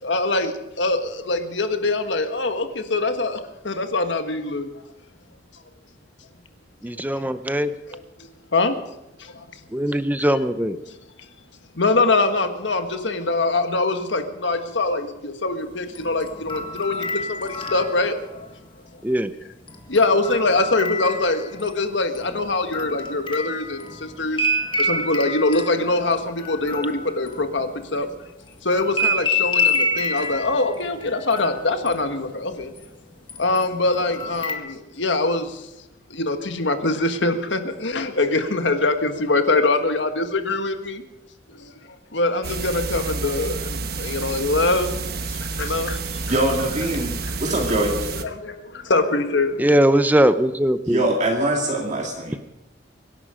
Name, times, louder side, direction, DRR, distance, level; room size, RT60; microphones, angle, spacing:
voice 1, 0.0-4.7 8.2-8.8 9.2-9.5 11.7-18.5 19.9-24.5 24.8-28.1 28.6-32.7 33.4-35.7 36.1-41.0 41.5-44.9 45.2-46.3 47.3-47.4 48.1-49.9, left 2 dB, 80° left, 7 dB, 1.6 m, -23 dB
voice 2, 6.8-7.7 9.7-10.8 19.0-19.3 49.6-51.0, right 1 dB, 10° right, 11 dB, 0.7 m, -20 dB
sound 1, 15.9-18.5 19.7-21.8 22.1-28.0 28.7-32.9 33.3-34.5, left 2 dB, 30° left, 1.7 m, -28 dB
sound 2, 42.4-48.2, right 3 dB, 55° right, 1.2 m, -29 dB
voice 3, 46.3-47.1 47.4-47.9 50.9-52.5, right 1 dB, 40° right, -1 dB, 2.1 m, -23 dB
24.5 x 11.0 x 5.1 m, 0.93 s
head